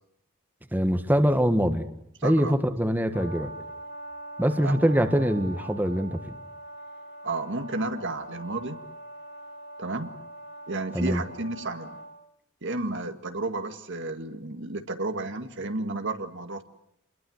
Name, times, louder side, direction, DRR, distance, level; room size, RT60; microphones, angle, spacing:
voice 1, 0.7-1.9 2.2-3.5 4.4-6.2 10.9-11.2, equal, 10° right, 7 dB, 1.7 m, -23 dB
voice 2, 2.2-2.5 4.6-4.7 7.2-8.8 9.8-10.1 10.7-12.0 12.6-16.6, right 2 dB, 60° right, 7 dB, 1.9 m, -32 dB
Brass instrument, 3.1-12.1, right 1 dB, 50° left, 7.6 m, -42 dB
28.0 x 22.0 x 8.0 m, 0.75 s
head